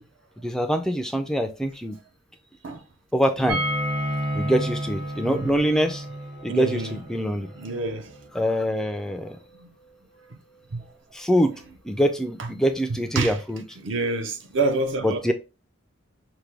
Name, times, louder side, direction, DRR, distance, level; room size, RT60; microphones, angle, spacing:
voice 1, 0.4-2.0 3.1-3.6 4.3-6.0 6.4-7.5 8.3-9.4 11.1-11.5 11.8-13.6 15.0-15.3, equal, 5° left, 0.3 m, -24 dB
Bowed string instrument, 3.4-8.7, right 1 dB, 40° right, 1.0 m, -32 dB
sound 1, 3.5-9.3 9.5-9.6 9.9-10.0, equal, 80° right, 1.2 m, -35 dB
voice 2, 6.5-7.0 7.6-8.1 9.6-9.7 10.7-10.9 12.4-12.5 12.9-13.4 13.8-15.3, right 2 dB, 60° right, 0.6 m, -27 dB
5.9 x 2.2 x 3.2 m
head